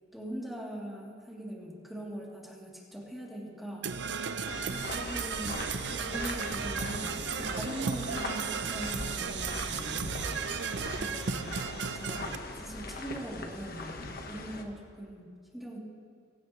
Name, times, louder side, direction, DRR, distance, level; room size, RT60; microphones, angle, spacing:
voice 1, 0.1-3.9 4.7-5.5 5.9-10.4 11.0-11.6 11.9-15.8, right 1 dB, ahead, -5 dB, 3.0 m, -41 dB
Percussion / Brass instrument, 3.8-12.4, right 6 dB, 65° right, 0.6 m, -35 dB
sound 1, 4.4-14.6, left 2 dB, 55° left, 1.3 m, -40 dB
22.5 x 17.0 x 3.2 m, 2.2 s
head